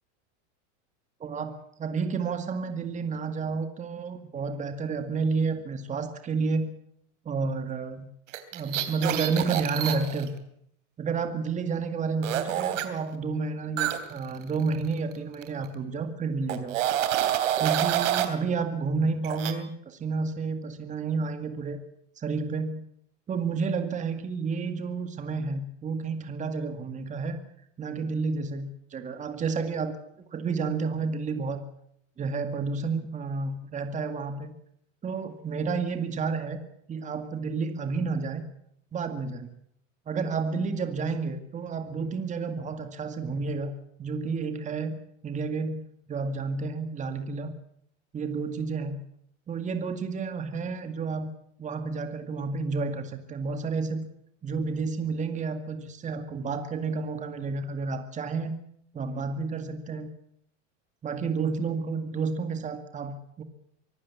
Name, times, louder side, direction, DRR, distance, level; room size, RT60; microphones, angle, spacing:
voice 1, 1.2-6.7 7.3-8.1 8.5-10.3 11.0-16.8 17.6-21.8 22.2-22.9 23.3-27.4 27.8-29.9 30.3-31.6 32.2-34.5 35.0-36.6 36.9-38.4 38.9-39.5 40.1-43.7 44.0-45.0 45.2-45.8 46.1-47.5 48.1-49.0 49.5-51.3 51.6-54.1 54.4-58.5 58.9-60.1 61.0-63.4, right 4 dB, 20° right, 7 dB, 2.1 m, -30 dB
sound 1, 8.3-10.3 12.2-12.9 13.8-15.2 15.4-15.7 16.5-18.3 19.2-19.5, right 11 dB, 80° right, 3.2 m, -28 dB
24.5 x 15.0 x 8.5 m, 0.71 s
supercardioid pair, 135°, 37 cm